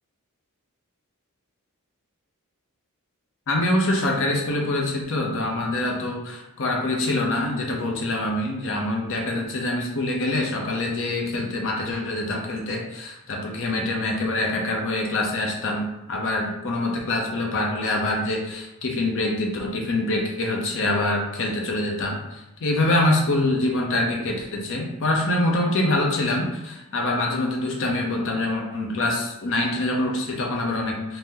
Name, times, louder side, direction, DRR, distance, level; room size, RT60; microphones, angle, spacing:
voice 1, 3.5-31.2, left 2 dB, 60° left, 0 dB, 0.6 m, -25 dB
2.8 x 2.1 x 3.4 m, 0.96 s
head